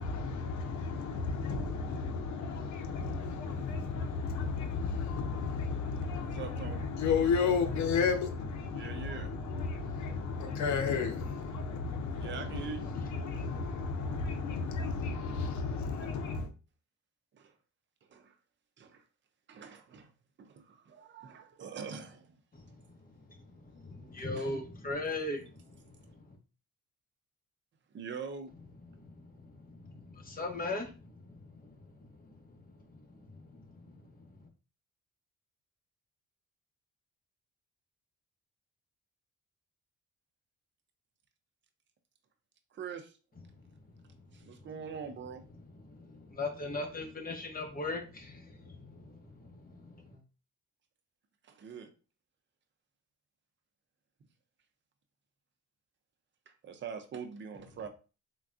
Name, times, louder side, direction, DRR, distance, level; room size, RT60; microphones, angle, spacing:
voice 1, 0.0-16.5, left 5 dB, 70° left, 0.7 m, -33 dB
voice 2, 6.2-6.9 8.7-9.3 12.1-12.9 17.3-17.5 18.0-18.4 18.8-19.0 19.5-20.1 20.4-22.4 24.2-24.6 27.9-28.5 42.7-43.2 44.3-45.4 51.4-51.9 56.5-57.9, right 6 dB, 40° right, 0.6 m, -43 dB
voice 3, 22.5-26.4 28.9-34.5 43.5-43.9 44.5-44.6 45.8-50.2, left 2 dB, 30° left, 0.9 m, -41 dB
3.4 x 2.2 x 2.5 m
cardioid pair, 90°, 30 cm